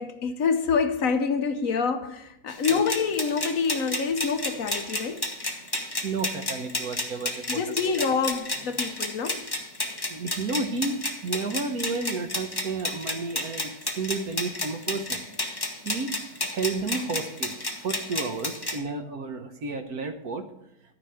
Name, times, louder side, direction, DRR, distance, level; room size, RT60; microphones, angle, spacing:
voice 1, 0.0-5.3 7.5-9.4, left 5 dB, 60° left, 8 dB, 1.1 m, -26 dB
sound 1, 2.5-18.8, left 1 dB, 15° left, 1.3 m, -32 dB
voice 2, 6.0-7.6 10.1-13.7 14.0-15.2 15.8-20.5, right 3 dB, 65° right, 7 dB, 1.5 m, -32 dB
13.0 x 5.3 x 7.7 m, 0.83 s
omnidirectional pair, 1.7 m